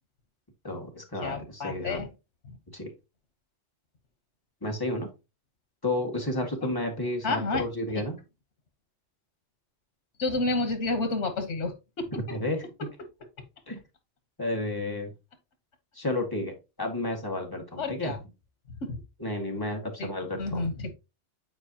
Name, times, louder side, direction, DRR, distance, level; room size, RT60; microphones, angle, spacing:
voice 1, 0.6-2.0 2.7-2.9 4.6-5.1 5.8-8.2 12.3-12.9 13.7-13.8 14.4-15.1 15.9-18.2 19.2-20.7, left 1 dB, 20° left, 1 dB, 1.8 m, -31 dB
voice 2, 1.2-2.1 2.5-2.6 6.4-6.5 7.2-7.6 10.2-12.1 17.8-18.2 18.8-19.0 20.0-20.9, left 3 dB, 85° left, 7 dB, 1.5 m, -30 dB
9.7 x 4.7 x 2.9 m, 0.27 s
omnidirectional pair, 1.2 m